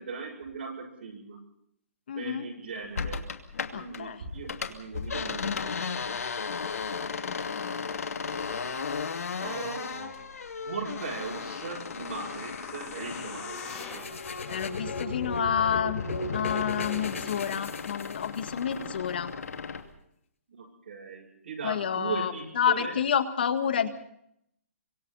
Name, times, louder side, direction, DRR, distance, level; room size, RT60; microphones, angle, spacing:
voice 1, 0.0-1.4 2.1-3.2 3.7-6.2 9.4-13.6 13.9-14.1 20.5-23.0, right 4 dB, 55° right, -2 dB, 7.5 m, -39 dB
voice 2, 2.1-2.5 3.7-4.2 7.2-7.8 14.5-19.3 21.6-23.9, left 8 dB, 40° left, 9 dB, 1.9 m, -29 dB
sound 1, 3.0-4.0 4.3-14.7 15.0-19.9, left 5 dB, 85° left, 2.5 m, -36 dB
sound 2, 10.6-14.2 14.8-14.9, left 6 dB, 10° left, 3.1 m, -45 dB
sound 3, 13.6-18.5, left 3 dB, 65° left, 5.6 m, -35 dB
29.0 x 25.0 x 4.1 m, 0.72 s
hypercardioid pair, 180°, 8 cm